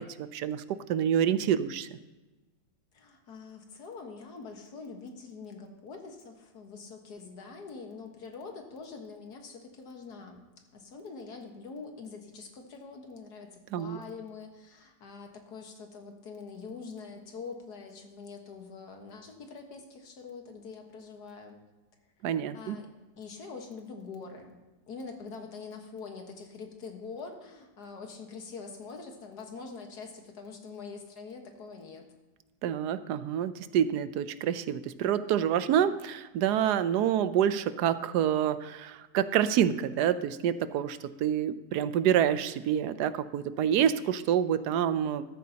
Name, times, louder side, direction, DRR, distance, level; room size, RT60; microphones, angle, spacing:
voice 1, 0.0-1.9 13.7-14.0 22.2-22.8 32.6-45.3, right 9 dB, 85° right, 13 dB, 1.2 m, -27 dB
voice 2, 2.9-10.4 10.7-21.6 22.5-22.9 23.2-24.5 24.9-32.1, left 4 dB, 80° left, 3 dB, 2.0 m, -44 dB
13.5 x 13.0 x 2.9 m, 1.2 s
omnidirectional pair, 1.7 m